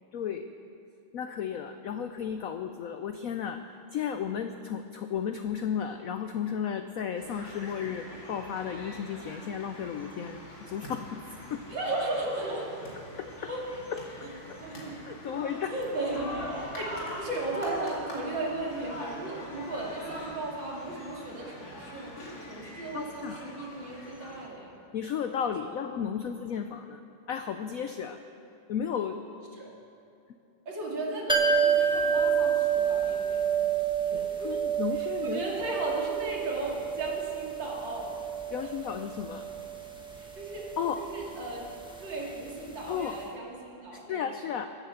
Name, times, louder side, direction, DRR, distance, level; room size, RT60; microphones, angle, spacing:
voice 1, 0.1-0.4 1.1-3.6 3.9-11.2 11.5-11.6 13.2-13.3 15.0-15.8 22.9-23.4 24.9-27.0 27.3-28.2 28.7-29.2 34.1-35.7 38.5-39.4 40.8-41.0 42.9-43.2 43.9-44.7, left 8 dB, 80° left, 8 dB, 0.7 m, -34 dB
sound 1, 7.2-24.5, equal, 50° left, 2.9 m, -43 dB
voice 2, 11.7-12.7 13.5-13.6 14.0-14.1 14.6-15.0 15.4-22.1 22.4-24.8 29.6-29.7 30.7-33.8 34.0-34.6 34.9-38.1 38.6-38.7 40.2-41.6 42.0-44.4, right 2 dB, 70° right, -4 dB, 3.4 m, -36 dB
sound 2, 31.3-42.9 43.2-43.3, right 7 dB, 5° right, 0.9 m, -29 dB
17.0 x 9.0 x 7.1 m, 2.6 s
omnidirectional pair, 2.1 m